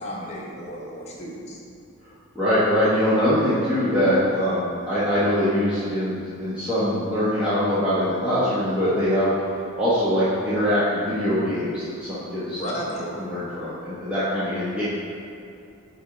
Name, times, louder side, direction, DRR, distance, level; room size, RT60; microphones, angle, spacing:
voice 1, 0.0-1.6 12.6-13.0, equal, 30° left, -4 dB, 1.0 m, -33 dB
voice 2, 2.3-9.3 9.8-12.6 13.2-14.8, equal, 5° right, -13 dB, 1.0 m, -23 dB
4.8 x 4.3 x 4.9 m, 2.6 s
head